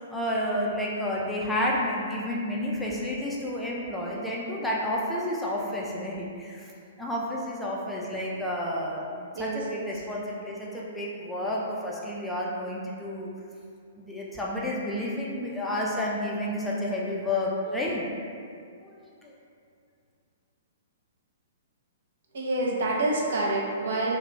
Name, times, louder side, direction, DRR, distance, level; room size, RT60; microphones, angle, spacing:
voice 1, 0.0-6.7 7.0-13.3 14.0-18.1 18.8-18.9 19.2-19.3, left 1 dB, 5° left, -5 dB, 0.3 m, -30 dB
voice 2, 9.3-9.9 22.3-24.2, right 2 dB, 60° right, -2 dB, 0.5 m, -27 dB
2.3 x 2.1 x 3.1 m, 2.3 s
figure-of-eight pair, 115°, 0 cm